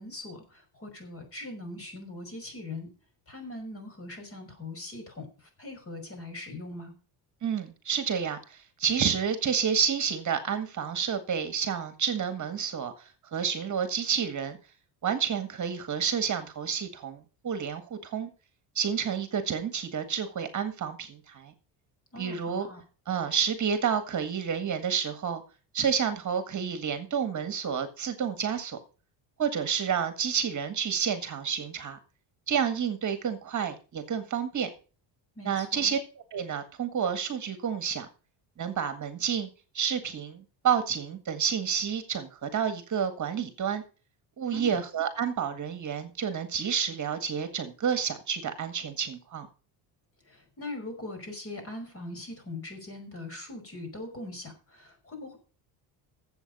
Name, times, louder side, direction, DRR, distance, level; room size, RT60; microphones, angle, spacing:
voice 1, 0.0-2.9 3.3-6.9 22.1-22.8 35.4-36.0 44.5-44.8 50.2-55.4, left 2 dB, 30° left, 5 dB, 5.3 m, -41 dB
voice 2, 7.4-14.6 15.0-18.3 18.8-21.5 22.2-22.7 23.1-25.4 25.7-28.8 29.4-32.0 32.5-34.7 35.4-36.0 36.3-38.1 38.6-39.5 39.7-43.8 44.4-49.5, right 7 dB, 40° right, 9 dB, 1.7 m, -29 dB
12.5 x 7.8 x 5.4 m, 0.36 s
cardioid pair, 110°, 45 cm